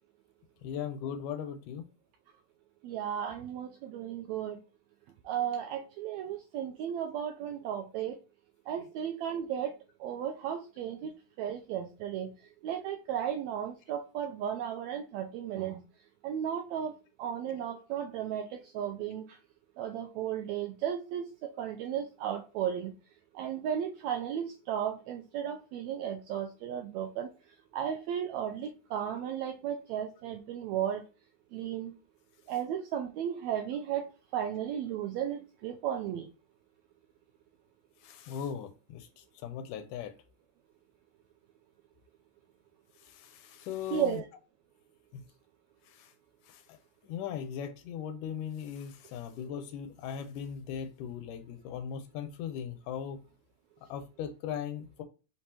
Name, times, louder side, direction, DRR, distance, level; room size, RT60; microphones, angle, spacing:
voice 1, 0.6-1.8 8.8-8.9 38.0-40.1 43.0-44.2 45.1-45.2 45.9-46.1 46.4-46.8 47.0-53.2 53.9-55.0, left 8 dB, 90° left, 2.2 m, -39 dB
voice 2, 2.8-4.6 5.2-8.2 8.7-9.7 10.0-11.1 11.4-12.3 12.6-15.8 16.2-16.9 17.2-19.4 19.8-22.9 23.3-27.3 27.7-31.1 31.5-31.9 32.5-34.1 34.3-36.3 43.9-44.2, right 9 dB, 85° right, 1.6 m, -34 dB
5.4 x 3.3 x 2.9 m
omnidirectional pair, 3.7 m